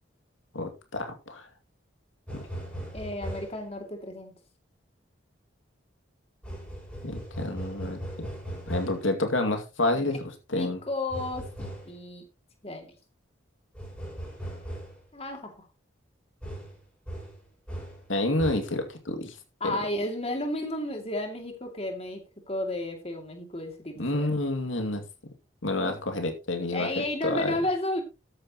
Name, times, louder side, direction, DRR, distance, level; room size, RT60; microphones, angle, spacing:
voice 1, 0.5-1.5 2.3-2.4 7.0-8.3 8.7-10.8 18.1-19.4 19.6-19.8 24.0-25.0 25.6-27.5, left 2 dB, 85° left, 5 dB, 2.4 m, -29 dB
sound 1, 2.3-3.7 6.4-9.1 11.1-12.0 13.7-15.0 16.4-18.1 18.4-18.8, right 1 dB, 5° left, 5.8 m, -38 dB
voice 2, 2.9-4.3 10.6-12.2 12.6-12.9 15.1-15.7 19.6-24.3 25.8-26.0 26.7-28.0, left 1 dB, 30° left, 3 dB, 2.5 m, -33 dB
13.5 x 9.6 x 3.0 m, 0.29 s
head